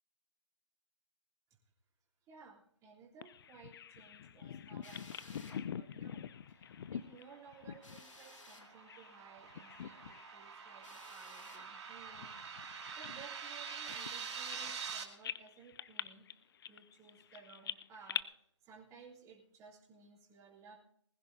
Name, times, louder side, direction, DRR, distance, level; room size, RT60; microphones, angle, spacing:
voice 1, 2.3-12.6 13.0-18.2 18.6-20.8, right 5 dB, 20° right, -4 dB, 3.2 m, -58 dB
Bird vocalization bird call bird song, 3.2-9.2 9.5-10.4 10.7-10.9 11.5-14.9 15.2-18.2, left 8 dB, 50° left, 0.5 m, -45 dB
Drill, 4.8-5.6 7.8-8.7 10.8-11.7 13.8-14.6, left 2 dB, 90° left, 2.6 m, -56 dB
sound 1, 7.3-15.0, right 6 dB, 60° right, 2.4 m, -46 dB
20.5 x 15.0 x 2.7 m, 0.71 s
figure-of-eight pair, 140°, 16 cm